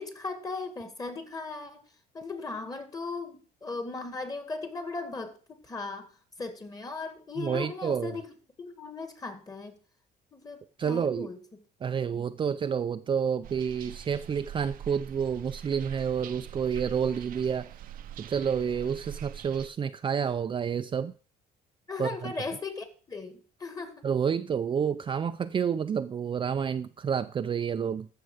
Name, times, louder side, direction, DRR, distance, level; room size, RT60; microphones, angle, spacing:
voice 1, 0.0-1.8 2.1-6.1 6.4-9.8 10.3-11.4 12.1-12.2 21.9-24.0, left 3 dB, 20° left, 2.1 m, -38 dB
voice 2, 7.4-8.2 10.8-11.3 11.8-17.7 18.2-21.1 22.0-22.3 24.0-28.1, right 7 dB, 30° right, 0.5 m, -29 dB
sound 1, 13.4-19.7, right 10 dB, 60° right, 0.7 m, -43 dB
13.5 x 6.8 x 4.9 m
cardioid pair, 115°, 16 cm